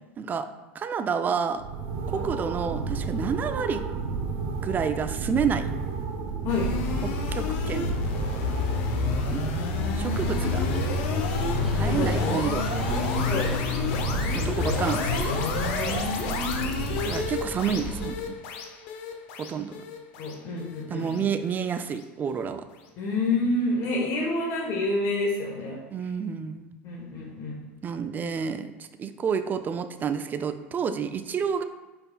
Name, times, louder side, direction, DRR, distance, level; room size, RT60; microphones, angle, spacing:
voice 1, 0.2-0.5 0.7-1.7 2.1-3.8 4.6-5.7 7.0-7.9 9.3-9.4 9.9-10.7 11.7-12.7 14.3-15.1 17.0-18.3 19.4-19.8 20.9-22.7 25.9-26.7 27.8-31.6, right 6 dB, 25° right, 10 dB, 0.3 m, -29 dB
sound 1, 1.5-17.5, right 4 dB, 60° right, 0.8 m, -32 dB
sound 2, 6.5-21.7, left 5 dB, 65° left, 0.7 m, -29 dB
sound 3, 9.7-18.1, right 2 dB, ahead, 0.9 m, -36 dB
voice 2, 11.8-12.3 13.3-13.5 15.7-16.0 20.2-21.2 23.0-25.8 26.8-27.6, left 2 dB, 50° left, -1 dB, 1.0 m, -28 dB
5.2 x 4.2 x 2.3 m, 1.2 s
hypercardioid pair, 100°, 7 cm